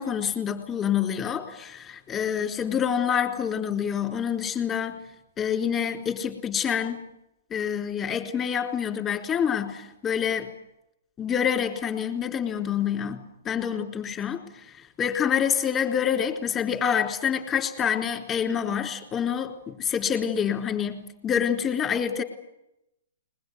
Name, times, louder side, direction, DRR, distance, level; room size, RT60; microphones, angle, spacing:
voice 1, 0.0-5.0 5.4-7.1 7.5-10.5 11.2-14.7 15.0-22.2, left 8 dB, 25° left, 4 dB, 4.2 m, -27 dB
22.0 x 21.0 x 9.6 m, 0.85 s
hypercardioid pair, 130°, 0 cm